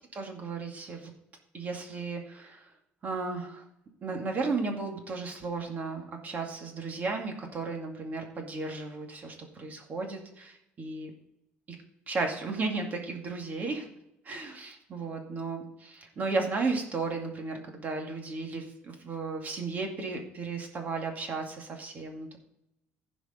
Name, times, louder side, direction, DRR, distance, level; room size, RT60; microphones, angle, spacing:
voice 1, 0.1-1.1 1.5-2.8 3.0-3.6 4.0-11.1 12.1-14.0 14.2-22.4, right 3 dB, 40° right, 2 dB, 2.2 m, -34 dB
15.0 x 5.2 x 5.1 m, 0.85 s
cardioid pair, 120°, 4 cm